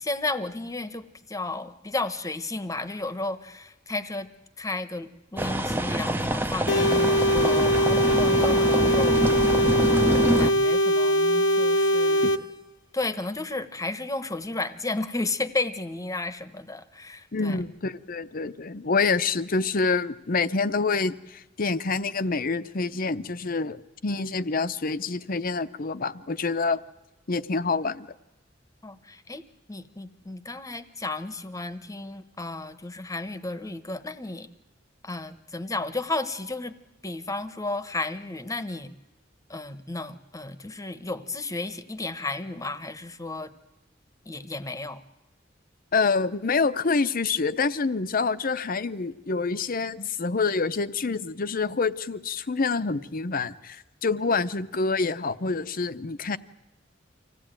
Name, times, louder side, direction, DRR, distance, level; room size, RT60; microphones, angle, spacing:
voice 1, 0.0-4.3 4.6-9.2 10.4-12.5 12.9-17.6 28.8-29.4 29.7-34.5 35.0-36.7 37.0-38.9 39.5-43.5 44.2-45.0, left 2 dB, 20° left, 12 dB, 1.0 m, -33 dB
sound 1, 5.4-10.5, right 1 dB, 10° right, 0.7 m, -26 dB
sound 2, 6.7-12.4, equal, 80° left, 1.2 m, -21 dB
voice 2, 17.3-26.8 27.3-28.1 45.9-56.4, left 4 dB, 50° left, 13 dB, 0.8 m, -27 dB
25.5 x 16.0 x 9.0 m, 1.0 s
head